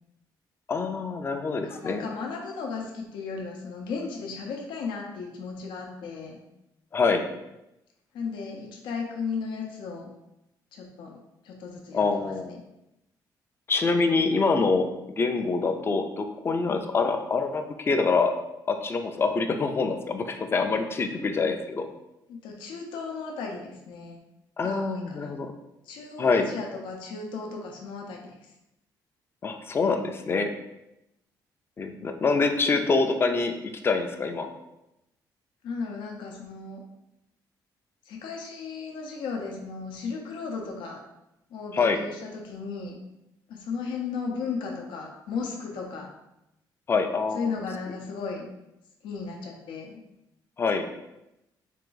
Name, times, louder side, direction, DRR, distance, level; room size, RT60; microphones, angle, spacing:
voice 1, 0.7-2.0 6.9-7.3 11.9-12.6 13.7-18.3 18.7-21.9 24.6-25.5 26.2-26.5 29.4-30.5 31.8-33.5 33.8-34.5 41.7-42.0 46.9-47.5 50.6-50.9, left 4 dB, 30° left, 6 dB, 0.4 m, -25 dB
voice 2, 1.6-6.4 8.1-10.1 10.7-12.3 22.3-24.2 24.6-25.3 25.9-28.3 35.6-36.8 38.1-41.0 41.5-43.0 43.5-46.1 47.3-48.5 49.0-50.0, left 5 dB, 85° left, 1 dB, 0.6 m, -35 dB
3.7 x 2.5 x 3.8 m, 0.90 s
cardioid pair, 115°, 8 cm